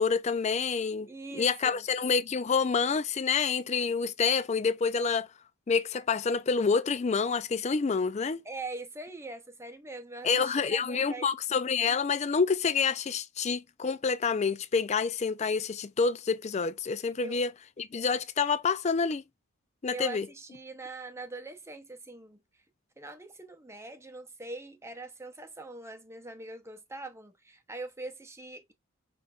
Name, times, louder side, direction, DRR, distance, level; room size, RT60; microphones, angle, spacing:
voice 1, 0.0-5.3 5.7-8.4 10.2-17.5 17.8-19.2 19.8-20.3, left 5 dB, 30° left, 0.3 m, -28 dB
voice 2, 1.1-1.8 8.4-11.3 17.2-17.4 19.9-22.4 23.0-28.7, right 2 dB, 10° right, 0.7 m, -42 dB
5.9 x 3.4 x 2.4 m
head